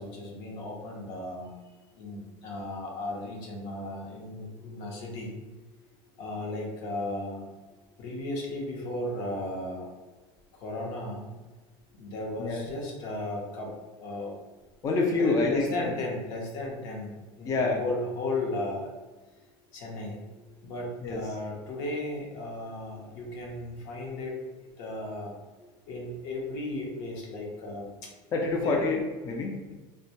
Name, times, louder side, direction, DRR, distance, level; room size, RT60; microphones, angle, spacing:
voice 1, 0.0-1.6 2.0-5.4 6.2-7.4 8.0-9.9 10.5-11.2 11.9-14.4 15.1-18.9 19.7-20.2 20.6-24.4 24.8-25.3 25.9-28.1 28.6-28.8, left 2 dB, 75° left, -2 dB, 0.7 m, -35 dB
voice 2, 14.8-15.7 17.4-17.8 21.0-21.2 28.3-29.7, left 3 dB, 25° left, 0 dB, 0.3 m, -27 dB
2.1 x 2.1 x 2.8 m, 1.2 s
supercardioid pair, 130°, 12 cm